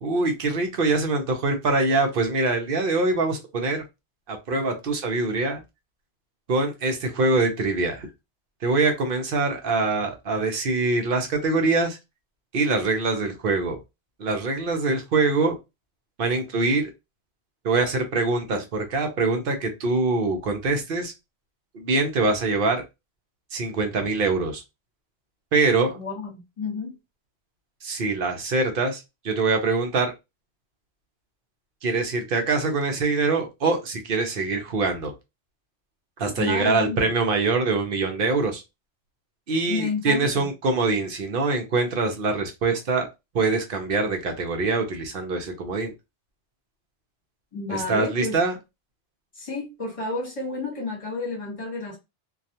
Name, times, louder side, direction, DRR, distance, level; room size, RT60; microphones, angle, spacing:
voice 1, 0.0-3.8 4.3-5.6 6.5-8.1 8.6-12.0 12.5-13.8 14.2-15.5 16.2-16.9 17.6-21.1 21.7-22.8 23.5-24.6 25.5-26.0 27.8-30.1 31.8-35.1 36.2-38.6 39.5-43.1 43.3-45.9 47.7-48.5, right 3 dB, 55° right, 0.8 m, -24 dB
voice 2, 25.9-26.9 36.4-37.1 39.7-40.5 47.5-48.4 49.3-52.0, left 3 dB, 30° left, 1.0 m, -31 dB
2.3 x 2.3 x 2.7 m
omnidirectional pair, 1.2 m